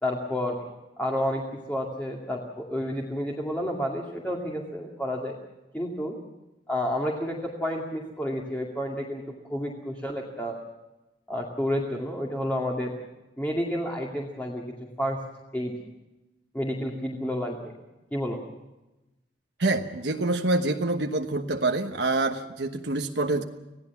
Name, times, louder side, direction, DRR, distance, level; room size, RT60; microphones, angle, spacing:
voice 1, 0.0-0.6 1.0-5.4 5.7-6.2 6.7-10.6 11.3-13.0 13.4-15.2 15.5-15.7 16.5-17.7 18.1-18.4, equal, 10° left, -1 dB, 2.4 m, -30 dB
voice 2, 19.6-23.4, right 2 dB, 80° right, 4 dB, 1.2 m, -26 dB
25.5 x 17.0 x 7.1 m, 1.0 s
head